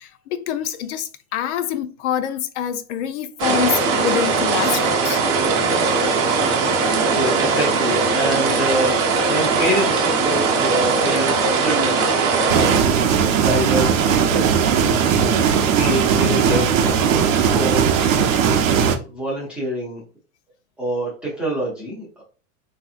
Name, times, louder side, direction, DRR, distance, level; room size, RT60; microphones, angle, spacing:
voice 1, 0.0-5.2, left 9 dB, 60° left, 0.5 m, -25 dB
sound 1, 3.4-12.8, right 4 dB, 35° right, 0.7 m, -19 dB
voice 2, 7.1-14.7 15.1-16.7 17.3-18.2 18.7-20.0 20.8-22.2, equal, 5° right, 0.3 m, -26 dB
sound 2, 12.5-19.0, right 7 dB, 70° right, 0.6 m, -18 dB
3.4 x 2.7 x 2.3 m
supercardioid pair, 145°, 41 cm